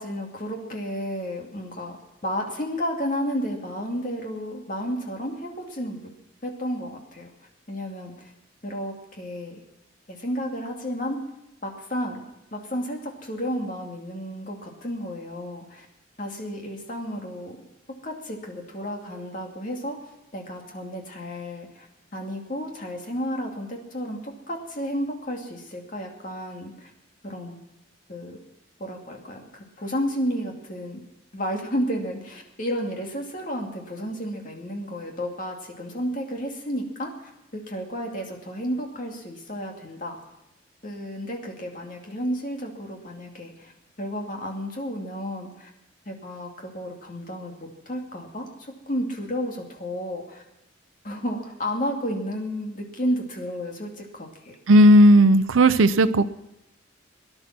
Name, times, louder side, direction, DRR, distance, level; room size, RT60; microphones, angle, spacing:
voice 1, 0.0-2.0 2.2-6.0 6.4-7.3 7.7-8.3 8.6-9.6 10.1-11.2 11.6-12.2 12.5-15.9 16.2-17.6 18.0-20.0 20.3-21.9 22.1-26.9 27.2-27.6 28.1-28.4 28.8-31.0 31.3-40.2 40.8-43.7 44.0-45.7 46.1-50.4 51.0-54.6, equal, 40° left, 1 dB, 2.4 m, -32 dB
voice 2, 54.7-56.2, equal, 90° right, 10 dB, 0.6 m, -14 dB
18.0 x 11.0 x 6.0 m, 0.88 s
head